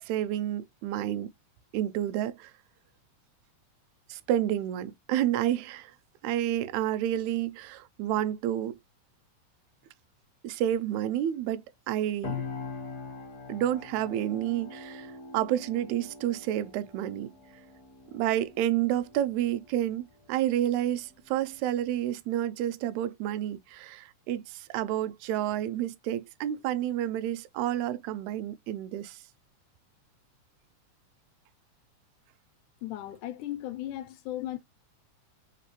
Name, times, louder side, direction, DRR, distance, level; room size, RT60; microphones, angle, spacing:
voice 1, 0.0-1.3 1.7-2.5 4.1-5.9 6.2-8.8 10.4-12.4 13.5-17.3 18.1-29.2, right 12 dB, 80° right, 1.8 m, -30 dB
sound 1, 12.2-22.0, left 5 dB, 65° left, 1.0 m, -44 dB
voice 2, 32.8-34.6, left 13 dB, 85° left, 2.2 m, -36 dB
4.1 x 3.9 x 3.0 m
omnidirectional pair, 3.5 m